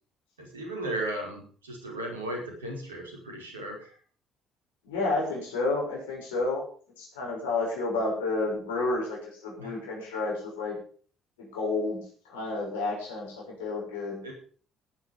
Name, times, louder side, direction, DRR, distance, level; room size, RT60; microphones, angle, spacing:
voice 1, 0.4-3.9 9.6-9.7 14.2-14.3, right 1 dB, 80° right, 1 dB, 4.9 m, -36 dB
voice 2, 4.8-6.6 7.0-10.8 11.4-12.0 12.3-14.2, left 3 dB, 75° left, -2 dB, 6.2 m, -30 dB
16.0 x 11.0 x 5.2 m, 0.43 s
figure-of-eight pair, 50°, 0 cm